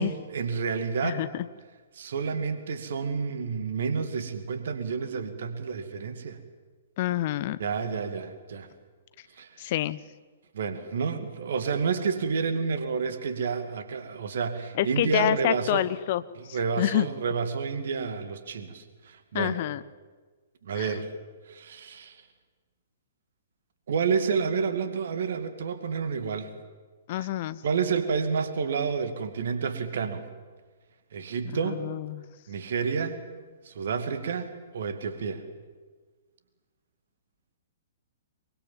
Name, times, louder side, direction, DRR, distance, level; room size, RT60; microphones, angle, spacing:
voice 1, 0.0-1.2 1.9-6.4 7.6-8.7 9.4-9.6 10.5-15.9 16.4-19.6 20.6-21.1 21.5-22.2 23.9-26.5 27.2-27.3 27.6-30.2 31.1-31.8 32.5-33.2 33.6-35.4, right 5 dB, 55° right, 9 dB, 2.3 m, -30 dB
voice 2, 1.0-1.5 7.0-7.6 9.6-10.0 14.7-17.1 19.3-19.8 20.8-20.9 27.1-27.6 31.6-32.3, left 14 dB, 45° left, 16 dB, 0.9 m, -28 dB
24.0 x 23.5 x 7.6 m, 1.4 s
figure-of-eight pair, 115°, 0 cm